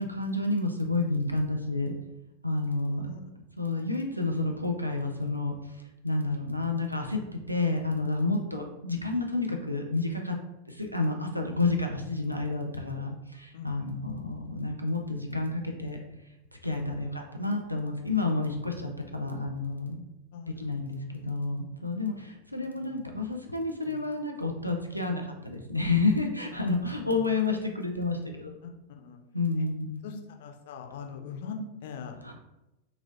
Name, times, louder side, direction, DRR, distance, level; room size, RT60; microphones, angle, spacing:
voice 1, 0.0-1.9 2.4-3.1 3.6-5.5 6.0-7.2 7.5-10.4 10.7-16.0 16.6-20.0 20.5-28.5 29.3-30.0 32.2-32.4, left 3 dB, 90° right, 2 dB, 0.3 m, -30 dB
voice 2, 2.9-3.2 6.2-6.7 13.5-13.9 16.7-17.1 20.3-20.5 21.2-21.3 22.6-22.8 23.9-24.0 24.9-25.2 26.8-27.2 28.6-28.7 29.0-29.2 29.6-29.7 30.0-32.1, left 5 dB, 55° left, 4 dB, 0.4 m, -42 dB
3.0 x 2.5 x 2.5 m, 0.94 s
figure-of-eight pair, 90°, 0 cm